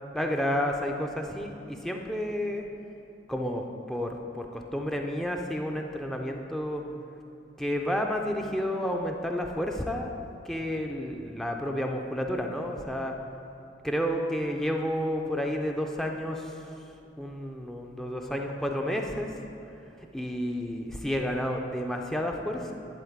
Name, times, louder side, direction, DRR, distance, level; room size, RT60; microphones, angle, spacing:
voice 1, 0.1-2.6 3.3-6.8 7.6-10.1 10.4-13.1 13.8-16.6 17.2-19.3 20.1-22.7, equal, ahead, 1 dB, 0.5 m, -31 dB
11.5 x 4.3 x 7.1 m, 2.9 s
head